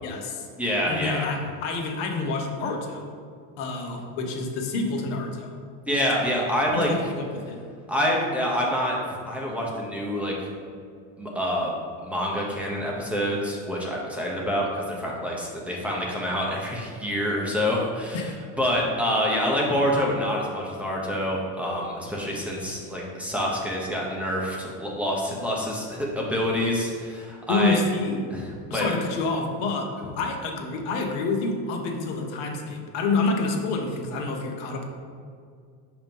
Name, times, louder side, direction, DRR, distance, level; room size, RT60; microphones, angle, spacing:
voice 1, 0.0-0.5 0.9-3.1 3.6-5.5 6.7-7.6 18.1-18.3 27.5-28.2 28.7-29.9 30.1-34.9, left 3 dB, 70° left, 3 dB, 1.0 m, -28 dB
voice 2, 0.6-1.3 5.9-6.9 7.9-8.9 9.3-10.3 11.2-11.7 12.0-18.3 18.6-27.8 28.3-28.4 28.7-28.9, equal, 5° right, -4 dB, 0.9 m, -26 dB
6.3 x 3.0 x 5.3 m, 2.2 s
supercardioid pair, 130°, 36 cm